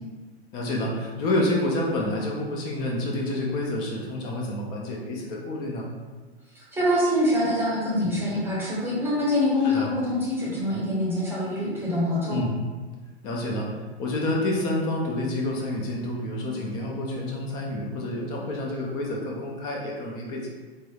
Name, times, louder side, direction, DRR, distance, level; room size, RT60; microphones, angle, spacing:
voice 1, 0.5-5.9 9.6-9.9 12.3-12.5 13.2-13.7 14.0-20.5, left 1 dB, 15° left, -1 dB, 0.3 m, -28 dB
voice 2, 6.5-12.4, left 1 dB, 5° right, -6 dB, 0.7 m, -25 dB
4.0 x 3.3 x 2.3 m, 1.3 s
hypercardioid pair, 130°, 32 cm